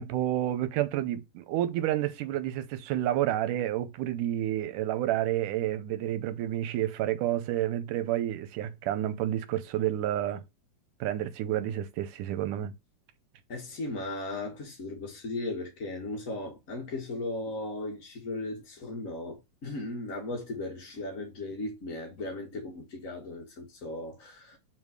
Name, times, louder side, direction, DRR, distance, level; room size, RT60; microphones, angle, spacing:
voice 1, 0.0-10.4 11.0-12.7, right 12 dB, 85° right, 2.4 m, -30 dB
voice 2, 13.5-24.6, left 2 dB, 50° left, 1.0 m, -37 dB
5.7 x 4.7 x 4.8 m
omnidirectional pair, 3.7 m